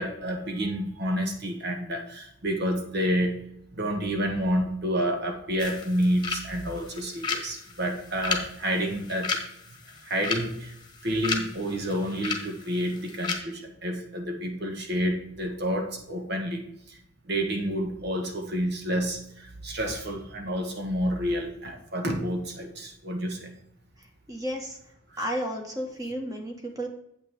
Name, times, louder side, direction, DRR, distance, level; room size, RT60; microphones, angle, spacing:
voice 1, 0.0-3.4 3.7-9.4 10.0-10.7 11.0-16.6 16.9-17.0 17.3-23.5 25.1-25.2, equal, 55° right, 3 dB, 1.4 m, -29 dB
sound 1, 5.6-13.3, left 4 dB, 20° left, 1.3 m, -35 dB
voice 2, 24.3-24.8 25.2-26.9, equal, 20° right, 2 dB, 1.6 m, -32 dB
8.7 x 8.2 x 3.6 m, 0.74 s
head